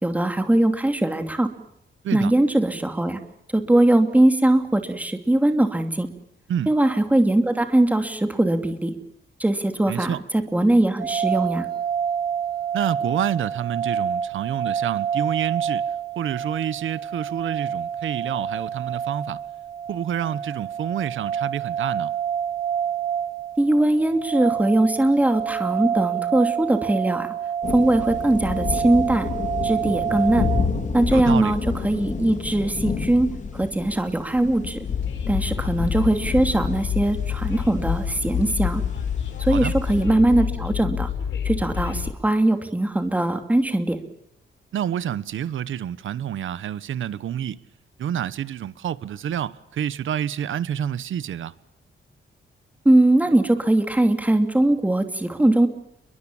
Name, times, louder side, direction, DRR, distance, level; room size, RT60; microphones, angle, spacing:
voice 1, 0.0-1.5 2.1-3.2 3.5-6.1 6.7-8.9 9.4-11.6 23.6-27.3 27.7-29.3 29.6-30.5 30.9-34.8 35.3-38.8 39.4-41.1 41.4-44.0 52.8-55.7, right 1 dB, 10° right, 2.7 m, -20 dB
voice 2, 9.9-10.2 12.7-15.8 16.1-19.4 19.9-22.1 31.1-31.6 39.5-39.7 44.7-47.6 48.0-51.5, right 9 dB, 90° right, 1.3 m, -28 dB
sound 1, 11.0-30.6, right 8 dB, 45° right, 3.4 m, -28 dB
sound 2, 27.6-40.0, left 5 dB, 40° left, 4.7 m, -31 dB
Train, 34.8-42.1, left 8 dB, 80° left, 5.6 m, -27 dB
30.0 x 22.5 x 7.4 m
wide cardioid pair, 175°, 20 cm